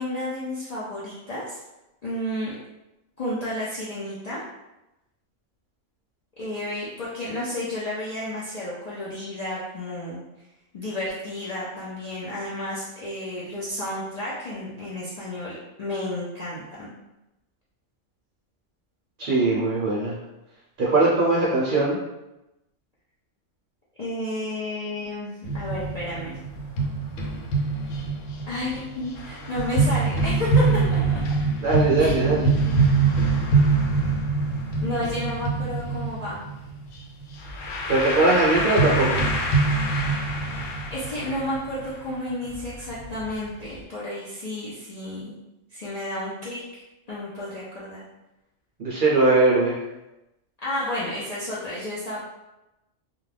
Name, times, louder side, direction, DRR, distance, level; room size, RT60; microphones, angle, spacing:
voice 1, 0.0-1.6 2.0-2.6 3.2-4.4 6.4-10.2 10.7-16.9 24.0-26.4 28.5-30.7 30.9-31.2 32.0-32.2 34.8-36.4 40.9-45.4 45.7-46.8 47.1-48.0 50.6-52.2, left 1 dB, 55° left, -8 dB, 0.4 m, -32 dB
voice 2, 19.2-20.1 20.8-22.0 31.6-32.5 37.9-39.3 48.8-49.8, right 2 dB, 55° right, -6 dB, 0.6 m, -20 dB
sound 1, 25.4-43.4 43.8-43.9, right 3 dB, 85° left, 1.0 m, -24 dB
2.4 x 2.2 x 3.2 m, 0.97 s
omnidirectional pair, 1.3 m